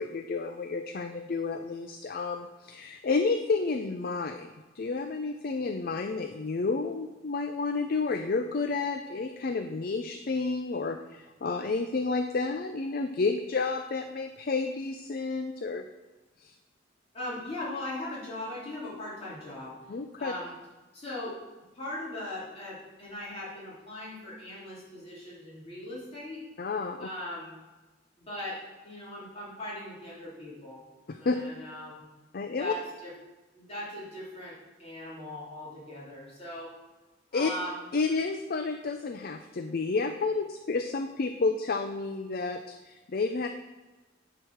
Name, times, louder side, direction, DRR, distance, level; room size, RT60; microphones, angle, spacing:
voice 1, 0.0-15.8 16.4-16.5 19.9-20.3 26.6-27.1 31.1-31.4 32.3-32.7 37.3-37.5 37.9-43.5, left 4 dB, 50° left, 7 dB, 0.4 m, -30 dB
voice 2, 17.1-19.8 20.2-20.5 20.9-21.4 21.7-26.4 27.0-27.6 28.2-30.8 31.2-32.1 32.5-33.1 33.5-36.7 37.3-37.9, left 1 dB, 30° left, -7 dB, 3.2 m, -39 dB
9.9 x 4.8 x 6.2 m, 1.2 s
head